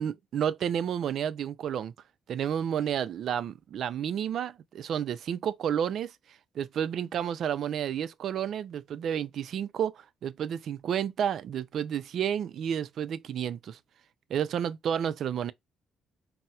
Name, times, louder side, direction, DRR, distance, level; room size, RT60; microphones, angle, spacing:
voice 1, 0.0-1.9 2.3-6.1 6.6-13.8 14.3-15.5, right 9 dB, 65° right, 0.3 m, -31 dB
4.1 x 2.0 x 2.2 m
cardioid pair, 90°, 0 cm